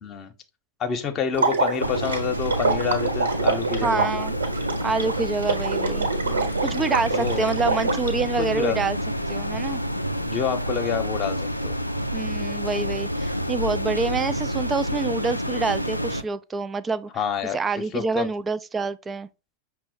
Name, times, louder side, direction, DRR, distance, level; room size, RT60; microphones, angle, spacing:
voice 1, 0.0-0.3 0.8-4.0 6.2-6.6 7.1-7.5 8.4-8.8 10.2-11.8 17.1-17.6 17.9-18.3, left 7 dB, 30° left, 0.8 m, -28 dB
Water / Liquid, 1.3-8.1, right 3 dB, 70° right, 1.0 m, -26 dB
sound 1, 1.8-16.2, equal, 90° left, 0.4 m, -28 dB
voice 2, 3.8-4.3 4.8-6.1 6.6-9.0 9.3-9.8 12.1-17.1 17.5-19.3, right 4 dB, 15° right, 0.3 m, -27 dB
6.0 x 2.1 x 4.2 m
figure-of-eight pair, 90°, 0 cm